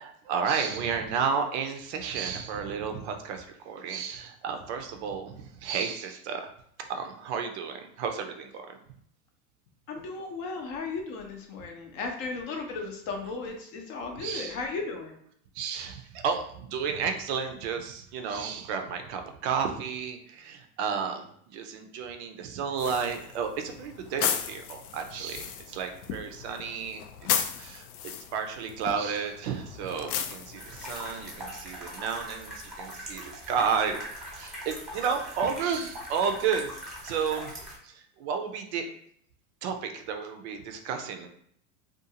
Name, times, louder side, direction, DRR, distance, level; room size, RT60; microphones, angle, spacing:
voice 1, 0.0-6.5 6.9-8.8 14.2-14.5 15.5-27.0 27.4-34.0 34.3-36.7 37.0-37.6 37.8-38.9 39.6-41.3, right 6 dB, 50° right, 5 dB, 0.5 m, -32 dB
voice 2, 9.9-15.2, left 4 dB, 40° left, 3 dB, 0.6 m, -35 dB
sound 1, 22.8-31.4, left 8 dB, 85° left, 0.5 m, -35 dB
sound 2, 30.6-37.8, equal, ahead, 0.9 m, -41 dB
2.5 x 2.3 x 2.7 m, 0.68 s
supercardioid pair, 130°, 43 cm